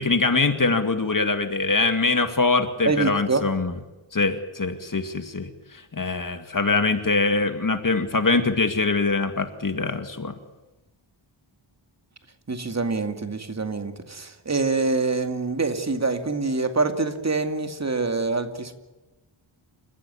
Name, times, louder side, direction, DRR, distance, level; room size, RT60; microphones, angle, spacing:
voice 1, 0.0-3.7 4.1-10.3, left 3 dB, 40° left, 8 dB, 2.1 m, -23 dB
voice 2, 2.8-3.4 12.5-18.7, right 3 dB, 30° right, 7 dB, 2.4 m, -25 dB
29.0 x 15.0 x 10.0 m, 1.1 s
wide cardioid pair, 115°, 49 cm